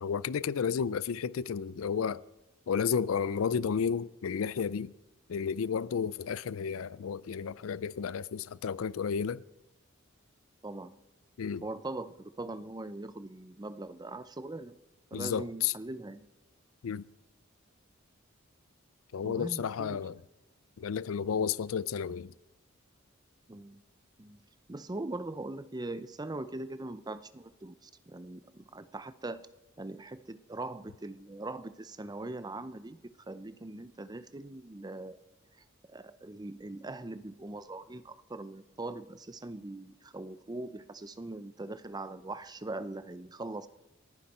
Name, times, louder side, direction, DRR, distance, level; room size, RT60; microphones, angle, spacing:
voice 1, 0.0-2.2 2.7-4.9 5.3-9.4 11.4-11.6 15.1-15.7 16.8-17.0 19.1-20.2 20.8-22.3, left 7 dB, 85° left, 0.4 m, -32 dB
voice 2, 10.6-11.0 11.6-14.7 15.1-16.3 19.2-20.0 23.5-23.8 24.2-24.4 24.7-29.5 29.8-33.0 33.3-35.2 35.9-43.7, right 2 dB, 20° right, 0.6 m, -41 dB
29.0 x 9.8 x 4.3 m
head